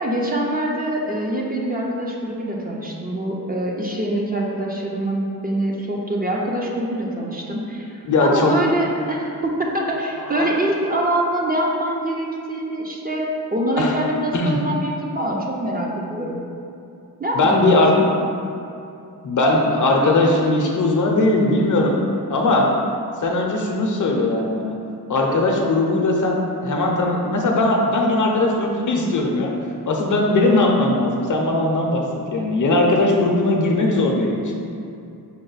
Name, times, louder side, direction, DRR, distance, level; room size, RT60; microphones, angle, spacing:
voice 1, 0.0-16.4 17.2-18.0, right 1 dB, 25° right, -2 dB, 0.4 m, -24 dB
voice 2, 8.0-8.5 10.2-10.5 13.8-14.0 14.3-14.6 17.3-17.9 19.2-22.0 22.3-22.7 23.2-24.7 25.1-29.5 29.9-32.0 32.3-34.4, left 2 dB, 55° left, 0 dB, 0.6 m, -19 dB
5.8 x 2.1 x 3.9 m, 2.6 s
wide cardioid pair, 120°, 38 cm